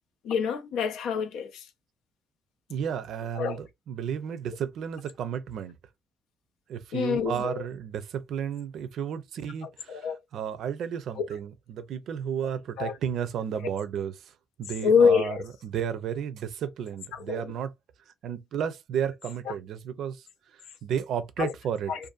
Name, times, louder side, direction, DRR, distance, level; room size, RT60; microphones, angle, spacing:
voice 1, 0.2-1.7 3.4-3.6 6.9-7.6 9.9-10.2 11.2-11.3 12.8-12.9 14.8-15.4 17.1-17.5 19.5-19.6 21.4-21.5 21.9-22.1, left 6 dB, 90° left, 0.4 m, -26 dB
voice 2, 2.7-5.7 6.7-14.3 14.6-15.4 15.6-17.7 18.2-20.2 20.5-21.9, right 8 dB, 75° right, 0.4 m, -33 dB
2.6 x 2.4 x 2.4 m
cardioid pair, 90°, 0 cm